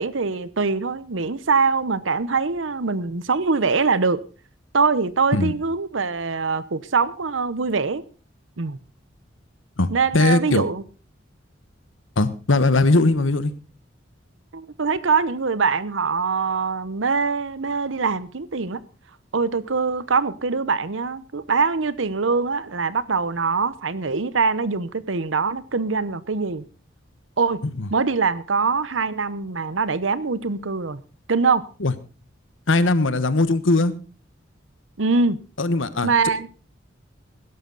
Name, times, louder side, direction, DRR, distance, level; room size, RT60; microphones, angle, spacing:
voice 1, 0.0-4.2 4.7-8.0 8.6-8.8 9.9-10.8 14.5-18.8 19.3-26.6 27.4-27.6 27.9-31.0 31.3-31.6 35.0-35.4 36.0-36.5, right 4 dB, 85° right, 0.9 m, -23 dB
voice 2, 9.8-10.6 12.2-13.5 27.8-27.9 31.8-31.9 32.7-33.9 35.6-36.1, left 2 dB, 90° left, 1.3 m, -19 dB
16.5 x 12.5 x 4.0 m
head